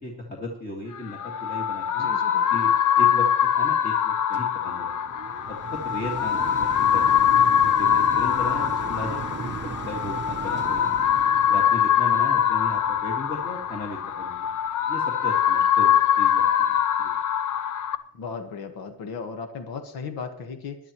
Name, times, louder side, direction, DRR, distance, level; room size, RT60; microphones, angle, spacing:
voice 1, 0.0-2.1 2.5-2.7 3.0-3.2 3.6-5.0 5.5-7.2 7.8-10.9 11.5-14.5 14.9-17.1, left 2 dB, 25° left, -1 dB, 1.9 m, -36 dB
sound 1, 0.9-17.9, left 9 dB, 60° left, 0.8 m, -23 dB
voice 2, 2.0-2.6 8.8-8.9 18.1-20.8, left 5 dB, 85° left, 6 dB, 1.5 m, -36 dB
sound 2, 4.3-15.6 16.2-16.3, right 7 dB, 30° right, 0.7 m, -39 dB
21.0 x 10.5 x 3.1 m, 0.65 s
cardioid pair, 170°, 35 cm